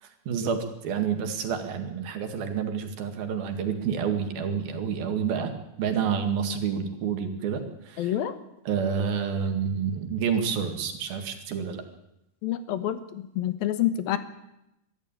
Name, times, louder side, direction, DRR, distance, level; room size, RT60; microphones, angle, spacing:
voice 1, 0.0-5.5 5.8-8.2 8.7-11.8, right 7 dB, 75° right, 6 dB, 3.9 m, -29 dB
voice 2, 8.0-8.3 12.4-14.2, left 11 dB, 75° left, 12 dB, 2.9 m, -27 dB
23.5 x 13.5 x 9.0 m, 0.86 s
omnidirectional pair, 4.3 m